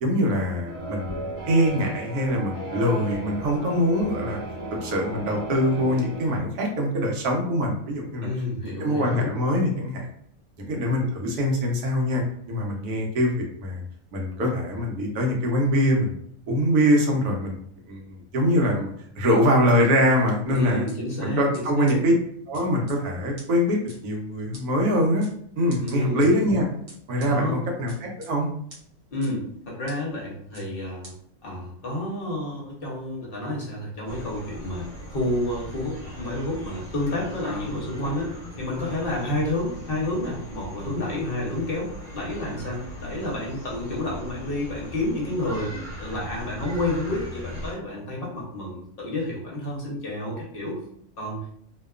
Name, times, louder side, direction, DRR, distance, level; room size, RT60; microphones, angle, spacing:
voice 1, 0.0-4.4 4.8-8.3 8.6-10.1 10.6-13.8 14.1-16.1 16.5-17.5 17.9-18.9 19.2-20.9 21.2-22.1 22.5-23.8 24.0-25.3 25.6-26.7 27.1-28.5, equal, 80° right, 0 dB, 1.2 m, -23 dB
sound 1, 0.7-6.4, right 1 dB, 15° right, 0.6 m, -35 dB
voice 2, 8.2-9.3 20.5-21.4 21.8-21.9 25.8-26.3 27.2-27.6 29.1-31.1 31.4-50.8 51.2-51.4, left 1 dB, 50° left, -3 dB, 0.8 m, -30 dB
sound 2, 20.5-20.9 21.5-21.6 21.9-22.0 22.5-23.0 23.4-23.5 23.9-24.0 24.5-24.6 25.2-25.3 25.7-26.3 26.9-27.3 27.9-28.3 28.7-28.8 29.2-29.3 29.9-30.0 30.5-30.7 31.0-31.1, right 1 dB, 65° right, 1.1 m, -45 dB
sound 3, 34.1-47.7, equal, 30° left, 1.1 m, -39 dB
2.8 x 2.2 x 2.3 m, 0.67 s
omnidirectional pair, 1.6 m